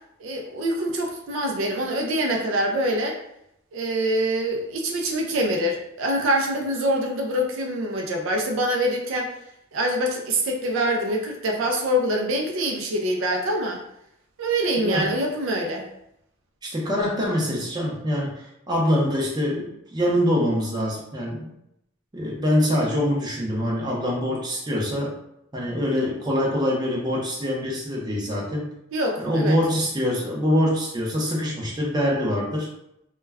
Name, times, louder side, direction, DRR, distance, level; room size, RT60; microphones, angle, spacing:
voice 1, 0.2-3.2 3.7-9.3 9.7-13.8 14.4-15.9 28.9-29.6, right 1 dB, 65° right, 1 dB, 0.4 m, -25 dB
voice 2, 14.8-15.2 16.6-21.5 22.1-25.2 25.5-28.7 29.2-32.7, equal, 20° right, -3 dB, 0.5 m, -24 dB
2.2 x 2.1 x 3.3 m, 0.79 s
head